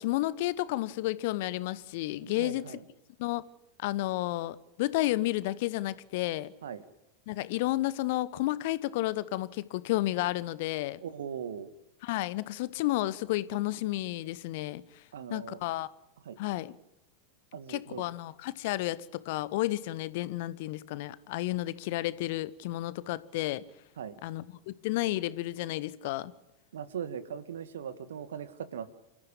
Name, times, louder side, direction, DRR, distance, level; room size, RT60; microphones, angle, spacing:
voice 1, 0.0-2.8 3.2-3.4 3.8-6.5 7.3-11.0 12.0-14.8 15.3-15.9 16.4-16.7 17.7-23.6 24.2-26.3, left 17 dB, 50° left, 1.0 m, -31 dB
voice 2, 2.4-2.8 6.6-6.8 11.0-11.7 15.1-15.6 16.2-16.4 17.5-18.0 24.0-24.1 26.7-28.9, right 8 dB, 60° right, 1.8 m, -39 dB
28.0 x 14.5 x 8.7 m
figure-of-eight pair, 90°, 0 cm